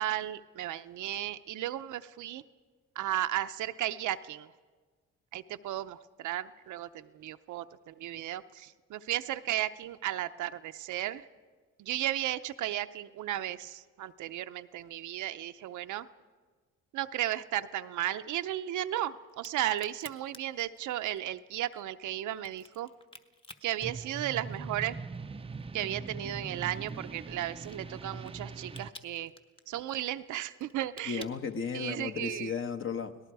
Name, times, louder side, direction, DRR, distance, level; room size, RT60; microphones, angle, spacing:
voice 1, 0.0-2.4 3.0-4.5 5.3-11.3 11.8-16.1 16.9-22.9 23.6-24.9 25.7-29.3 29.7-31.3 31.7-32.5, right 13 dB, 75° right, 10 dB, 0.7 m, -34 dB
Crack, 19.3-24.8 25.1-32.2, left 2 dB, 15° left, 1.2 m, -54 dB
sound 1, 23.8-28.9, right 4 dB, 20° right, 0.5 m, -41 dB
voice 2, 31.1-33.2, left 6 dB, 45° left, 7 dB, 1.3 m, -34 dB
29.5 x 18.5 x 4.8 m, 1.4 s
cardioid pair, 90°, 30 cm